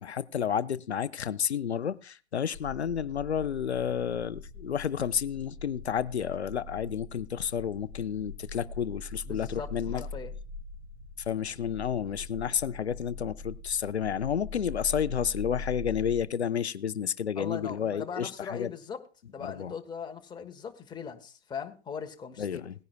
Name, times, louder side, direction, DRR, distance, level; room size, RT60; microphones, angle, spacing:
voice 1, 0.0-10.1 11.3-18.7 19.4-19.7 22.4-22.7, left 8 dB, 90° left, 0.5 m, -31 dB
sound 1, 4.3-16.2, left 3 dB, 35° right, 4.2 m, -42 dB
voice 2, 9.3-10.3 17.4-19.0 19.3-22.7, left 6 dB, 15° left, 1.3 m, -40 dB
19.0 x 10.0 x 2.3 m
figure-of-eight pair, 110°, 32 cm